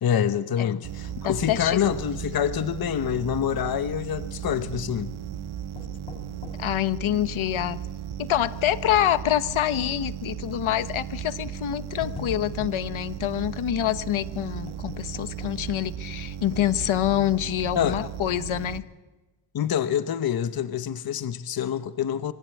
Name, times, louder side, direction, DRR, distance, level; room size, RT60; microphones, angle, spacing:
voice 1, 0.0-5.1 17.8-18.0 19.5-22.3, left 9 dB, 45° left, 12 dB, 0.9 m, -26 dB
sound 1, 0.8-18.8, right 9 dB, 80° right, 1.4 m, -36 dB
voice 2, 1.2-1.8 6.6-7.8 8.2-18.9, left 12 dB, 70° left, 13 dB, 1.2 m, -26 dB
sound 2, 1.4-2.4 2.7-2.8 3.5-4.2 5.5-6.8 7.3-7.4 8.1-8.3 8.6-8.7 9.9-10.2 11.1-11.2 11.6-12.9 14.7-15.8 16.6-17.5 18.1-18.2 18.5-18.7, left 4 dB, 90° left, 4.2 m, -42 dB
26.5 x 21.5 x 8.5 m, 1.2 s
wide cardioid pair, 160°, 49 cm